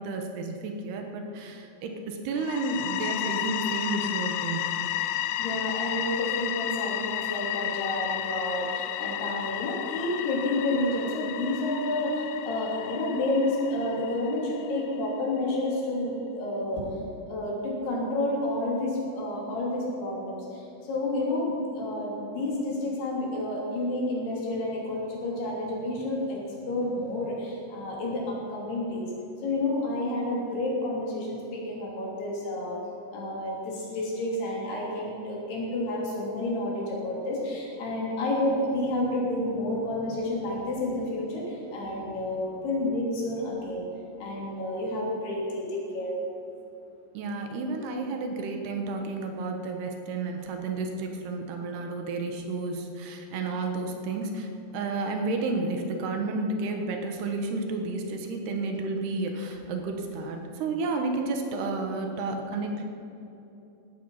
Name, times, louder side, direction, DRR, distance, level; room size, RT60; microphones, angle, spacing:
voice 1, 0.0-4.7 47.1-54.5 54.7-62.8, right 3 dB, 75° right, 3 dB, 3.2 m, -31 dB
sound 1, 2.4-15.1, left 13 dB, 85° left, 2.2 m, -33 dB
voice 2, 5.4-16.9 17.3-29.1 29.4-32.8 33.1-43.9 44.2-46.2, left 1 dB, 65° left, -3 dB, 5.2 m, -30 dB
17.0 x 13.0 x 5.7 m, 2.9 s
omnidirectional pair, 5.0 m